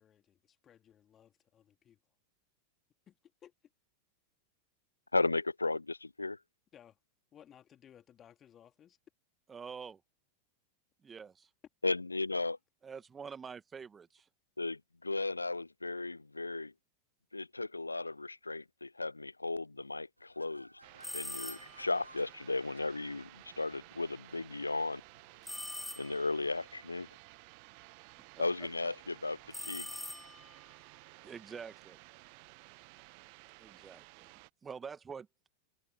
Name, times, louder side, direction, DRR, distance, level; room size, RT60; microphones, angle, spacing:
voice 1, 0.0-2.0 3.1-3.2 3.4-3.5 6.7-7.0 7.3-9.0, left 10 dB, 25° left, 2.4 m, -60 dB
voice 2, 5.1-6.4 11.8-12.6 14.6-16.7 17.3-20.7 21.1-23.3 23.6-25.0 26.0-27.1 28.4-30.0, left 3 dB, 80° left, 0.4 m, -35 dB
voice 3, 9.5-10.0 11.0-11.5 12.8-14.3 28.4-28.5 31.2-32.0 33.6-34.3 34.6-35.3, right 6 dB, 20° right, 1.9 m, -46 dB
sound 1, 20.2-26.0, equal, 90° right, 4.9 m, -59 dB
sound 2, 20.8-34.5, right 38 dB, 45° right, 0.6 m, -56 dB
sound 3, 21.0-21.9 25.5-26.4 29.5-30.7, left 1 dB, 5° left, 0.6 m, -43 dB
figure-of-eight pair, 90°, 0 cm